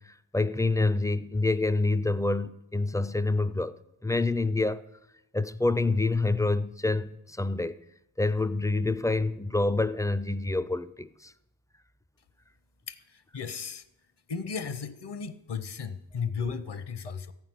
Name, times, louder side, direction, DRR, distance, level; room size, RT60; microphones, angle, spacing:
voice 1, 0.0-3.8 4.0-4.8 5.3-7.8 8.2-11.3, left 2 dB, 10° left, 0.3 m, -27 dB
voice 2, 12.9-13.8 14.3-17.3, left 6 dB, 65° left, 0.9 m, -35 dB
14.5 x 6.0 x 9.4 m
wide cardioid pair, 115°, 44 cm